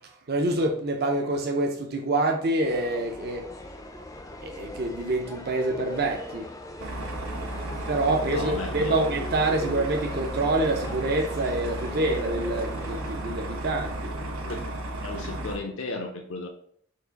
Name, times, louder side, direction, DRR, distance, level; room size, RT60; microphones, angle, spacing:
voice 1, 0.3-3.4 4.4-6.5 7.9-14.1, right 2 dB, 50° right, 0.5 m, -26 dB
sound 1, 2.6-13.1, left 1 dB, 15° left, 0.4 m, -41 dB
sound 2, 6.8-15.6, right 1 dB, 85° right, 0.7 m, -34 dB
voice 2, 8.3-9.0 14.2-14.6 15.0-16.5, left 3 dB, 70° left, 0.5 m, -35 dB
4.6 x 2.4 x 3.9 m
head